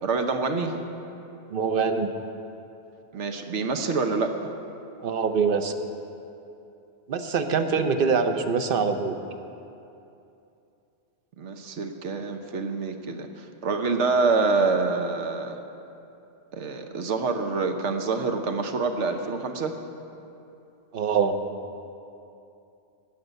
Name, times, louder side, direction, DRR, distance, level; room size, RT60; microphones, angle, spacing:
voice 1, 0.0-0.8 3.1-4.3 7.6-7.9 11.4-15.6 16.5-19.8, right 4 dB, 85° right, 5 dB, 1.2 m, -26 dB
voice 2, 1.5-2.1 5.0-5.7 7.1-9.1 20.9-21.3, right 5 dB, 55° right, 7 dB, 0.8 m, -24 dB
14.0 x 5.4 x 9.1 m, 2.8 s
omnidirectional pair, 1.2 m